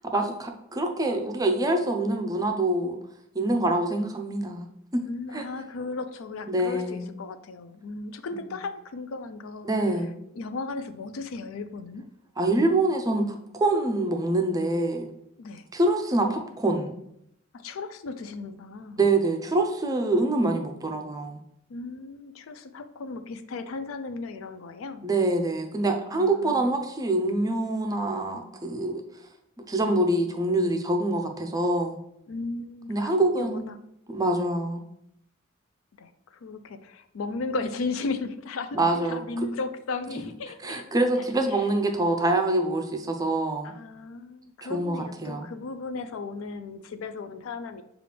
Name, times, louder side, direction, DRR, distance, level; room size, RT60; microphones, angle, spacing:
voice 1, 0.1-3.0 3.3-4.7 4.9-5.0 5.3-5.4 6.5-7.1 8.3-8.4 9.6-10.1 12.4-15.1 15.7-16.9 19.0-21.4 25.0-29.0 29.7-32.0 32.9-33.7 34.1-34.8 38.7-39.5 40.6-43.7 44.6-45.5, right 2 dB, 20° right, 4 dB, 0.5 m, -25 dB
voice 2, 5.1-9.7 10.3-12.0 15.4-15.7 17.5-19.0 21.7-25.1 26.1-26.7 32.3-33.8 36.0-40.8 41.2-41.3 43.6-47.8, left 3 dB, 75° left, 9 dB, 0.4 m, -36 dB
6.6 x 2.4 x 3.3 m, 0.76 s
head